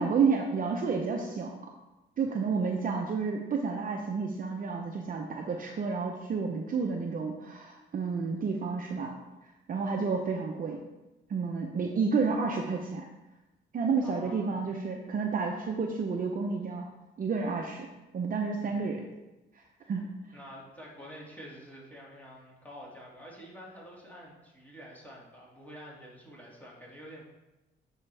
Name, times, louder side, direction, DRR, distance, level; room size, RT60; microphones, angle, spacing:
voice 1, 0.0-1.5 2.2-9.1 9.7-10.8 11.3-13.1 13.7-16.8 17.2-17.9 18.1-19.0 19.9-20.1, right 5 dB, 45° right, 1 dB, 0.8 m, -30 dB
voice 2, 14.0-14.6 18.6-19.1 20.3-27.2, equal, 10° left, -4 dB, 2.1 m, -48 dB
9.4 x 4.6 x 3.4 m, 1.0 s
cardioid pair, 90°, 20 cm